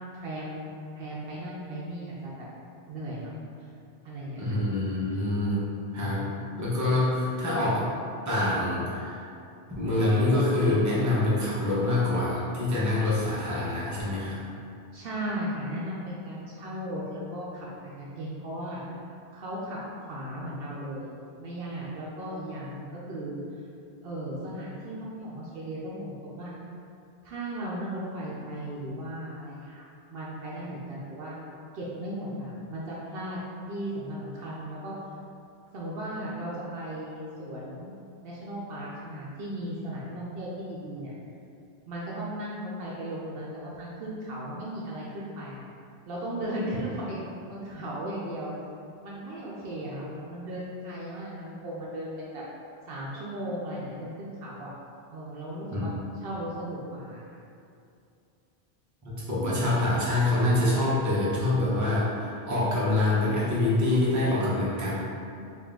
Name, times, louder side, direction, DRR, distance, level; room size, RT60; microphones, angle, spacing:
voice 1, 0.1-0.7 0.9-2.5 2.9-3.3 4.0-4.6 14.9-18.8 19.3-21.1 21.4-23.4 24.0-26.5 27.2-31.4 31.7-33.4 33.7-34.9 35.7-37.9 38.2-41.1 41.9-45.6 46.1-47.2 47.5-48.5 49.0-52.4 52.9-54.7 55.1-55.9 56.2-57.4, right 1 dB, 65° right, -6 dB, 0.8 m, -36 dB
voice 2, 4.4-6.3 6.6-7.8 8.2-9.2 9.8-14.4 55.7-55.8 59.0-64.9, left 2 dB, 20° right, -8 dB, 0.8 m, -25 dB
3.9 x 2.5 x 3.6 m, 2.5 s
omnidirectional pair, 1.1 m